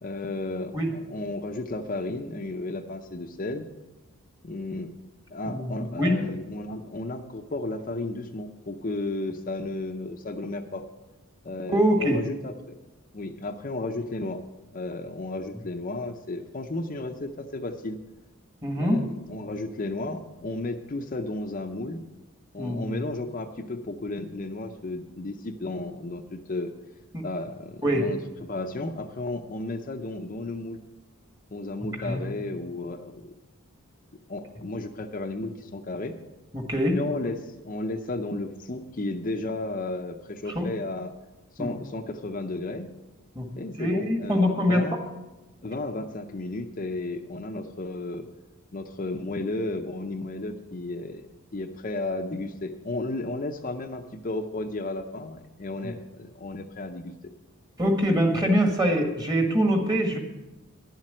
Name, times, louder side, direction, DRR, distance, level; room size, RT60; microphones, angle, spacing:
voice 1, 0.0-3.7 4.4-4.9 5.3-10.8 11.4-12.7 13.1-14.4 14.7-18.0 18.8-22.0 22.5-26.7 27.2-30.8 31.5-33.3 34.3-36.1 36.9-41.1 41.5-42.9 43.6-45.0 45.6-48.3 48.7-51.3 51.5-57.1, left 2 dB, 40° left, 5 dB, 0.6 m, -33 dB
voice 2, 5.5-6.1 11.7-12.2 18.6-19.0 22.6-23.0 27.1-27.2 27.8-28.0 32.0-32.2 36.5-37.0 40.5-40.7 41.6-41.7 43.3-43.5 43.8-44.8 55.8-55.9 57.8-60.2, equal, 20° right, 4 dB, 1.5 m, -24 dB
11.0 x 7.4 x 7.7 m, 1.1 s
head